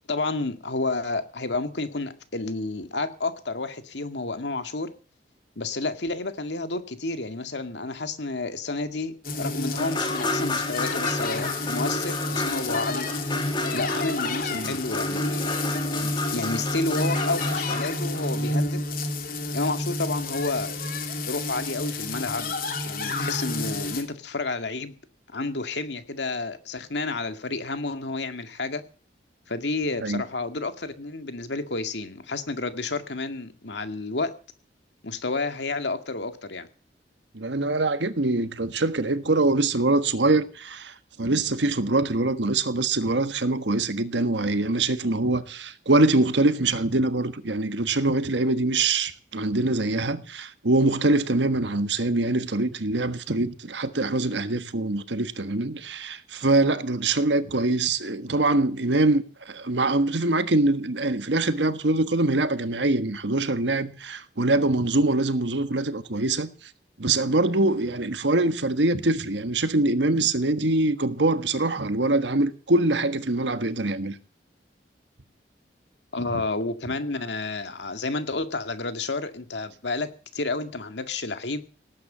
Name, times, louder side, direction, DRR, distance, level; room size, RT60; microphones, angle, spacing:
voice 1, 0.1-4.9 5.6-13.1 13.7-15.5 15.9-18.8 19.5-20.7 21.2-22.5 22.8-24.9 25.3-28.8 29.5-34.3 35.0-36.7 76.1-81.6, left 3 dB, 80° left, 2.1 m, -30 dB
sound 1, 9.2-24.0, left 2 dB, 55° left, 3.1 m, -30 dB
sound 2, 9.8-18.6, left 2 dB, 25° left, 2.4 m, -32 dB
voice 2, 37.3-66.5 67.0-74.1, right 2 dB, 85° right, 1.4 m, -24 dB
18.5 x 9.6 x 7.3 m
head